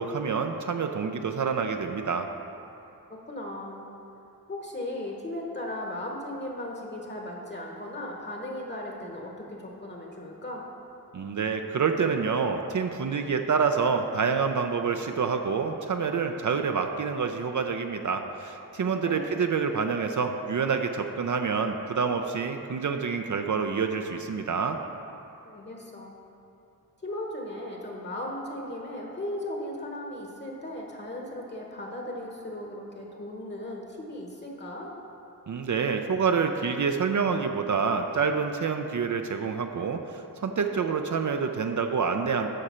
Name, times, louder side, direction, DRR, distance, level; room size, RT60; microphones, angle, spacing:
voice 1, 0.0-2.3 11.1-24.8 35.5-42.5, right 5 dB, 55° right, 5 dB, 0.5 m, -27 dB
voice 2, 3.1-3.9 4.5-10.7 19.0-19.2 25.4-26.2 27.0-34.9, left 1 dB, 30° left, -1 dB, 1.0 m, -37 dB
13.0 x 5.0 x 4.3 m, 2.8 s
wide cardioid pair, 105°, 37 cm